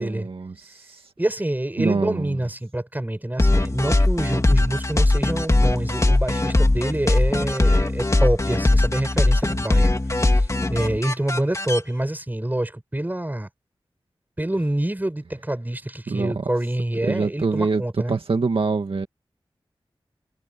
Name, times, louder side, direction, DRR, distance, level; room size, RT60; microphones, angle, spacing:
voice 1, 0.0-1.0 1.8-2.4 16.1-16.4 17.0-17.8 18.1-19.1, right 4 dB, 75° right, 2.1 m, -25 dB
voice 2, 1.2-13.5 14.4-18.2, right 1 dB, 20° right, 7.3 m, -26 dB
sound 1, 3.4-11.8, left 2 dB, 30° left, 2.3 m, -20 dB
wide cardioid pair, 65°, 10 cm